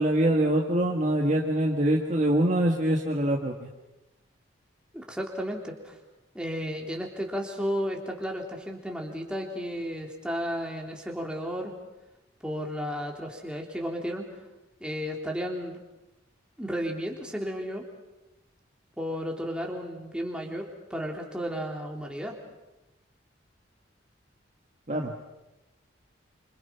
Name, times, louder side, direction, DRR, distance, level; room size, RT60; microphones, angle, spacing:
voice 1, 0.0-3.7 24.9-25.1, right 1 dB, 40° right, 0 dB, 1.7 m, -24 dB
voice 2, 4.9-6.0 6.3-11.7 12.4-14.3 14.8-15.8 16.6-17.8 19.0-22.4, equal, 5° right, 0 dB, 3.2 m, -33 dB
27.0 x 26.5 x 5.8 m, 1.0 s
head